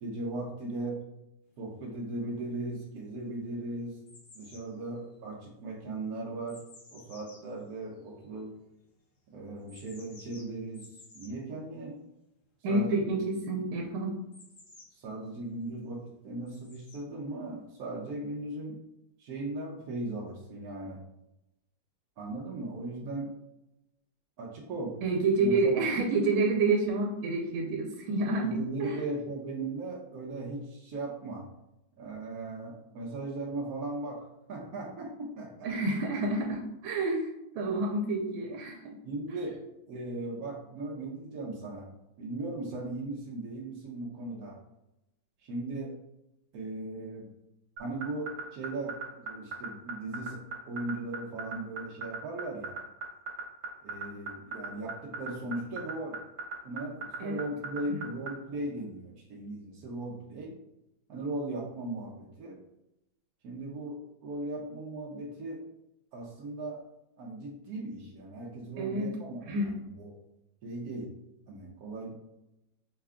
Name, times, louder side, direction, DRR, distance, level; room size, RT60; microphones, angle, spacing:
voice 1, 0.0-1.1 1.6-4.0 4.3-6.6 6.9-8.6 9.3-12.0 12.7-13.2 14.9-18.8 19.2-21.0 22.2-23.4 24.4-25.0 25.4-25.8 28.4-31.5 32.0-35.7 39.0-41.9 42.2-44.6 45.4-46.0 46.5-47.3 47.8-52.8 53.8-56.3 56.6-60.6 61.1-62.6 63.4-65.7 66.1-66.8 67.2-70.2 70.6-71.1 71.5-72.1, right 2 dB, 65° right, -3 dB, 1.0 m, -38 dB
sound 1, 1.7-1.8 2.5-3.1 3.3-8.6 9.6-11.4 14.3-15.4 16.5-17.0 18.0-18.1, left 3 dB, 70° left, 1.9 m, -55 dB
voice 2, 12.6-14.1 25.0-29.0 35.6-39.0 39.3-39.5 57.2-57.4 57.9-58.0 68.8-69.1 69.5-69.7, right 3 dB, 90° right, -1 dB, 1.5 m, -29 dB
sound 2, 47.8-58.3, right 5 dB, 35° right, 0.7 m, -36 dB
5.5 x 2.3 x 3.6 m, 0.89 s
omnidirectional pair, 2.1 m